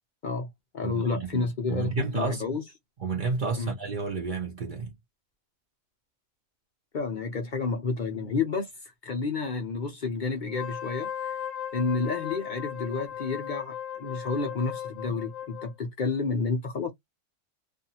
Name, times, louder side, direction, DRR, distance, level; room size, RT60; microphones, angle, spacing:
voice 1, 0.2-2.6 3.6-3.7 6.9-8.7 9.0-11.3 11.7-16.9, left 4 dB, 55° left, 0.5 m, -30 dB
voice 2, 0.8-2.4 3.0-4.9 15.1-15.2, right 4 dB, 50° right, 0.6 m, -31 dB
Wind instrument woodwind instrument, 10.5-15.7, left 9 dB, 75° left, 0.9 m, -37 dB
2.5 x 2.4 x 2.7 m
omnidirectional pair, 1.5 m